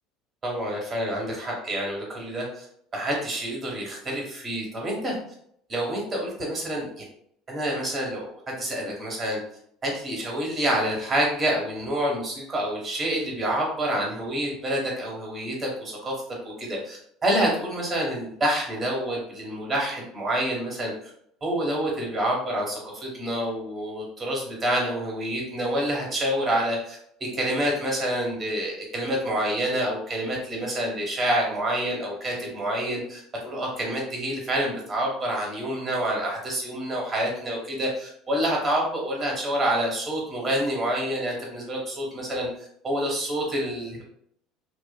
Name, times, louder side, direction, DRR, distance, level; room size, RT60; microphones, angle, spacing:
voice 1, 0.4-2.7 2.9-5.1 5.7-7.0 7.5-9.4 9.8-16.1 16.4-20.9 21.4-27.0 27.3-42.5 42.8-44.0, right 1 dB, 30° right, -2 dB, 1.3 m, -27 dB
2.5 x 2.5 x 2.3 m, 0.69 s
hypercardioid pair, 75°, 0 cm